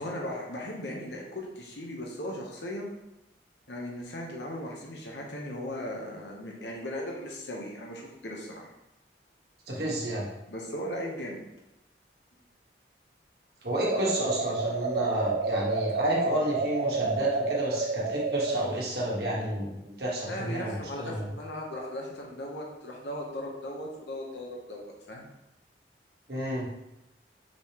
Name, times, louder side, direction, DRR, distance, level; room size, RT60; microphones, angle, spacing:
voice 1, 0.0-2.9 3.7-8.7 10.5-11.4 20.3-25.3, left 1 dB, 70° left, -1 dB, 0.8 m, -37 dB
voice 2, 9.7-10.3 13.6-21.3 26.3-26.7, equal, 60° right, -4 dB, 1.3 m, -31 dB
sound 1, 13.8-18.7, right 3 dB, 80° right, 0.4 m, -29 dB
5.1 x 3.5 x 2.9 m, 0.89 s
head